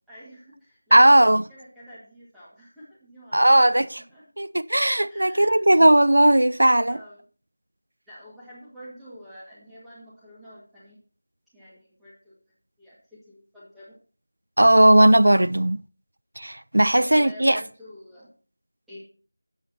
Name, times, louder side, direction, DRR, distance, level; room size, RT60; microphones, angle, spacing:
voice 1, 0.1-1.2 1.5-4.2 5.1-5.6 6.9-7.2 8.1-11.0 11.5-12.4 12.8-14.0 16.9-18.3 18.9-19.0, equal, ahead, 2.0 m, -47 dB
voice 2, 0.9-1.4 3.3-3.8 4.4-7.0 14.6-15.8 16.4-17.6, right 1 dB, 80° right, 0.4 m, -17 dB
9.2 x 8.0 x 4.3 m
figure-of-eight pair, 175°, 0 cm